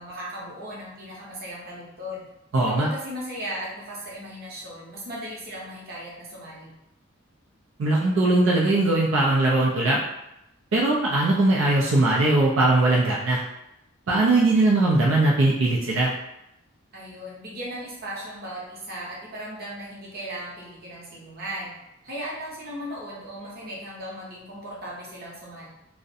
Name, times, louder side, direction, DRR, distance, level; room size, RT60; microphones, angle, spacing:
voice 1, 0.0-2.2 2.8-6.7 16.9-21.7 22.0-25.7, equal, 50° right, -5 dB, 0.7 m, -37 dB
voice 2, 2.5-2.9 7.8-10.0 10.7-13.4 14.1-16.1, right 2 dB, 85° right, -4 dB, 0.4 m, -20 dB
2.4 x 2.1 x 2.6 m, 0.86 s
head